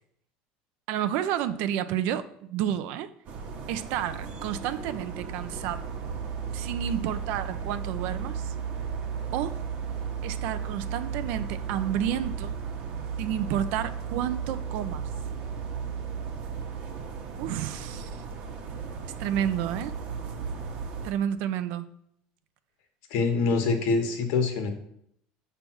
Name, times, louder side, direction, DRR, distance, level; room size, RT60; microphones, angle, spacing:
voice 1, 0.9-3.1 3.7-5.9 6.5-8.5 9.3-9.6 10.2-12.6 13.2-15.0 17.4-18.2 19.2-19.9 21.0-21.9, right 10 dB, 60° right, 0.5 m, -30 dB
sound 1, 3.3-21.1, right 6 dB, 45° right, 1.0 m, -35 dB
voice 2, 23.1-24.7, left 4 dB, 70° left, 1.4 m, -25 dB
7.0 x 3.4 x 6.2 m
cardioid pair, 160°, 3 cm